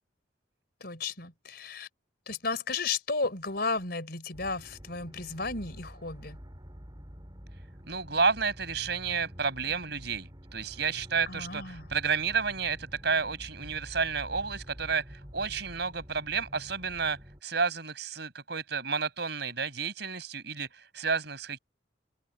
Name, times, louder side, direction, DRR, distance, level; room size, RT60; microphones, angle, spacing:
voice 1, 0.8-1.9 2.3-6.4 11.3-11.9, left 4 dB, 55° left, 4.4 m, -34 dB
sound 1, 4.3-17.4, equal, 25° right, 4.3 m, -48 dB
voice 2, 7.9-21.6, right 5 dB, 60° right, 6.0 m, -31 dB
open air
head